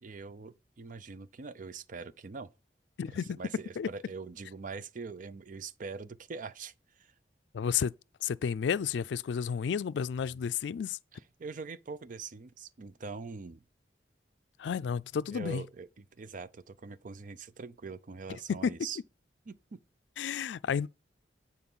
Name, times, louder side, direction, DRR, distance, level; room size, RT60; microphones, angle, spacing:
voice 1, 0.0-2.5 3.1-7.1 11.1-13.6 15.3-19.0 19.5-19.8, right 4 dB, 50° right, 0.5 m, -43 dB
voice 2, 3.0-3.4 3.8-3.9 7.5-7.9 8.2-11.0 14.6-15.6 18.5-18.7 20.2-20.9, left 7 dB, 80° left, 0.3 m, -31 dB
9.5 x 4.3 x 5.5 m
head